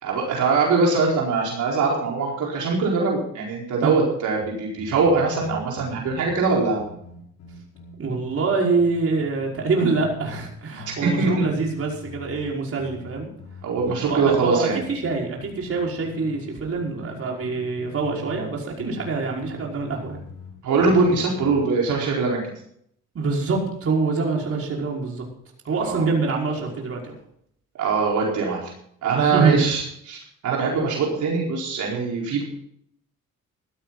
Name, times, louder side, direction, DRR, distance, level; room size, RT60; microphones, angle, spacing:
voice 1, 0.0-6.8 10.9-11.4 13.6-14.8 20.6-22.4 25.8-26.1 27.8-28.7 29.0-32.4, right 4 dB, 75° right, -2 dB, 4.7 m, -22 dB
sound 1, 4.4-8.5 8.8-10.5 10.8-16.5 16.8-18.5 18.8-21.6, left 4 dB, 80° left, 5.4 m, -42 dB
voice 2, 8.0-13.3 14.0-20.2 23.1-25.2 25.7-27.2 29.1-29.6, right 4 dB, 50° right, -1 dB, 5.3 m, -25 dB
16.5 x 13.0 x 4.1 m, 0.67 s
cardioid pair, 90°, 30 cm